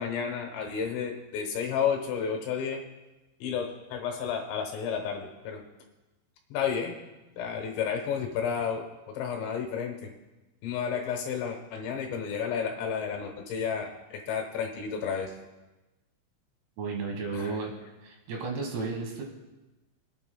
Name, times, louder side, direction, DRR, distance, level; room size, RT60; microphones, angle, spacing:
voice 1, 0.0-2.8 3.4-5.6 6.5-6.9 7.4-10.1 10.6-15.3 17.3-17.6, left 7 dB, 75° left, 2 dB, 3.2 m, -31 dB
voice 2, 16.8-17.7 18.0-19.2, right 4 dB, 70° right, 1 dB, 3.3 m, -33 dB
27.0 x 9.1 x 2.2 m, 1.1 s
omnidirectional pair, 5.7 m